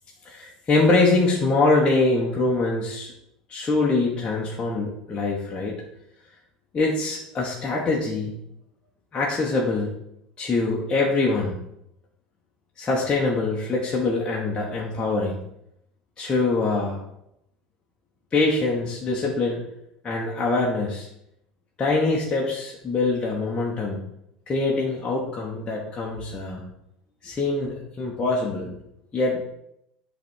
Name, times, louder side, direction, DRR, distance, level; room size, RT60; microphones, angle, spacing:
voice 1, 0.2-3.1 3.5-5.8 6.7-8.3 9.1-9.9 10.4-11.6 12.8-15.4 16.2-17.0 18.3-19.6 20.0-21.1 21.8-24.0 24.5-26.6 27.2-28.7 29.1-29.4, left 3 dB, 25° left, -3 dB, 1.3 m, -24 dB
8.1 x 3.4 x 4.6 m, 0.79 s
hypercardioid pair, 80°, 4 cm